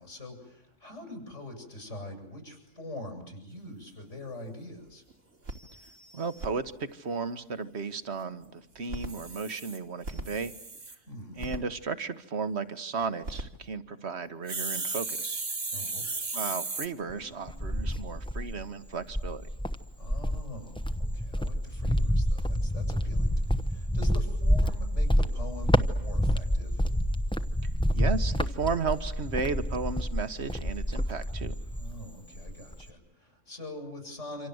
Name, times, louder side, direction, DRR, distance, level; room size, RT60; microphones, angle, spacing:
voice 1, 0.0-5.0 11.1-11.5 15.7-16.3 20.0-26.8 31.8-34.5, left 1 dB, 75° left, 4 dB, 7.9 m, -44 dB
sound 1, 4.3-4.4 4.8-4.9 5.1-5.2 5.5-6.5 8.8-11.0 11.4-11.6 13.0-13.4 14.5-16.9, right 3 dB, 80° right, 3.0 m, -35 dB
voice 2, 6.1-10.5 11.4-15.5 16.3-19.5 27.9-31.5, right 4 dB, 60° right, 11 dB, 1.7 m, -34 dB
Cricket, 17.1-18.6 19.1-32.0 32.3-32.9, equal, 5° left, 0.9 m, -28 dB
27.5 x 26.5 x 8.0 m, 0.73 s
omnidirectional pair, 1.3 m